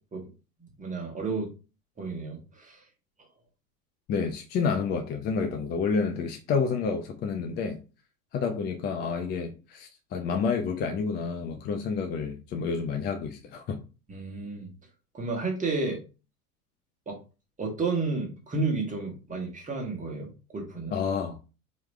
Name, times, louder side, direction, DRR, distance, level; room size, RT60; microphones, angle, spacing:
voice 1, 0.8-1.5 2.0-2.8 14.1-14.7 15.1-16.0 17.1-17.2 17.6-21.0, right 3 dB, 15° right, 1.7 m, -31 dB
voice 2, 4.1-7.8 8.3-13.8 20.9-21.4, left 5 dB, 20° left, 0.5 m, -29 dB
4.7 x 3.2 x 3.1 m
figure-of-eight pair, 80°, 45 cm